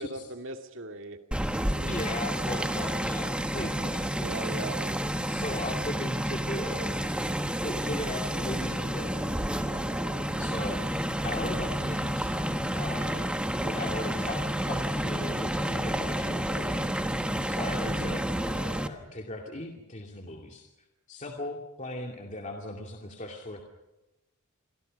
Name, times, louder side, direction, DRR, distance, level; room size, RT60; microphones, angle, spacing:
voice 1, 0.0-1.9 4.2-5.0 17.8-18.2, right 2 dB, 60° right, 5 dB, 2.3 m, -40 dB
sound 1, 1.3-18.9, equal, 5° right, 1.2 m, -30 dB
voice 2, 1.9-4.0 5.3-7.2 7.6-9.1 10.4-12.4 12.7-13.3 13.5-16.9 17.5-20.7 21.1-23.6, left 2 dB, 35° left, 1 dB, 2.4 m, -38 dB
sound 2, 9.2-17.3, left 1 dB, 75° left, 6.7 m, -49 dB
29.0 x 23.0 x 5.3 m, 1.0 s
head